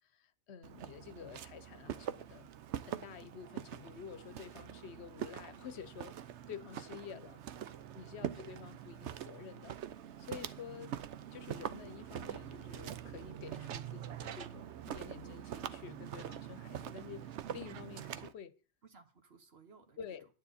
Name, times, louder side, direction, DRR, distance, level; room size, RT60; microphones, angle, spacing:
voice 1, 0.1-2.5 2.8-6.2 6.5-7.4 7.9-9.8 10.2-11.0 11.3-18.5 20.0-20.3, left 7 dB, 70° left, 1.0 m, -50 dB
Walk footsteps, 0.6-18.3, right 10 dB, 80° right, 1.0 m, -44 dB
voice 2, 7.1-7.9 8.2-8.5 18.8-20.2, right 6 dB, 60° right, 1.5 m, -57 dB
10.0 x 9.5 x 4.2 m
omnidirectional pair, 1.2 m